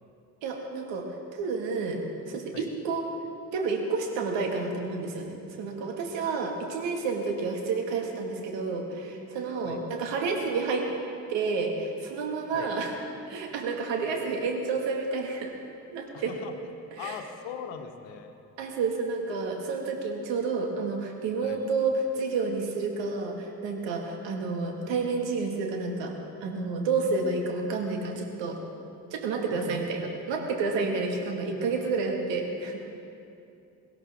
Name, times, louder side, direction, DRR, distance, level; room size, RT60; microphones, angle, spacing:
voice 1, 0.4-2.0 2.3-3.1 3.5-10.9 11.3-12.9 13.3-15.5 15.9-16.3 16.9-17.2 18.6-26.1 26.4-28.6 29.1-32.8, right 4 dB, 65° right, 2 dB, 2.1 m, -30 dB
voice 2, 16.1-18.3 21.4-21.6 29.5-29.8, left 8 dB, 70° left, 6 dB, 1.3 m, -40 dB
23.5 x 11.5 x 3.7 m, 2.7 s
hypercardioid pair, 40°, 47 cm